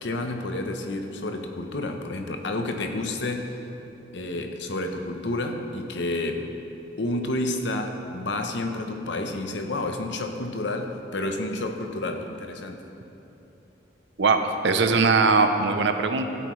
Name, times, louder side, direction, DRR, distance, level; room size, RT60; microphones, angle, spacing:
voice 1, 0.0-3.5 4.1-6.4 7.0-12.8, left 2 dB, 65° left, 5 dB, 0.8 m, -30 dB
voice 2, 14.2-16.3, right 4 dB, 65° right, 7 dB, 0.6 m, -21 dB
15.0 x 8.0 x 3.2 m, 2.9 s
head